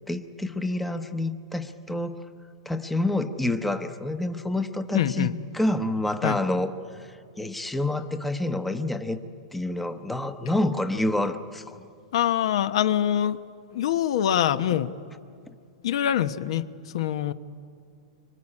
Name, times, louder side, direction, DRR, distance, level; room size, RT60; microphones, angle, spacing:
voice 1, 0.1-2.2 2.6-9.2 9.5-11.8 15.5-15.6, left 1 dB, 5° left, 8 dB, 0.9 m, -28 dB
voice 2, 4.9-5.3 6.2-6.4 12.1-13.4 13.7-14.9 15.8-16.6 16.9-17.3, left 10 dB, 70° left, 12 dB, 1.0 m, -24 dB
24.5 x 24.0 x 9.9 m, 2.4 s
supercardioid pair, 150°, 3 cm